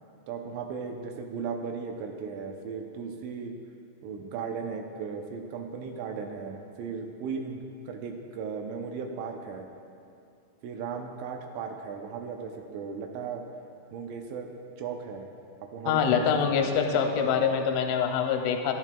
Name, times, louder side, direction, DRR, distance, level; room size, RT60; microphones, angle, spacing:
voice 1, 0.3-3.5 4.0-9.7 10.6-13.4 13.9-14.5 14.8-15.3 15.7-16.4, right 5 dB, 80° right, 4 dB, 2.9 m, -36 dB
voice 2, 15.9-18.7, left 6 dB, 85° left, 4 dB, 3.0 m, -25 dB
12.0 x 11.0 x 2.2 m, 2.5 s
omnidirectional pair, 5.5 m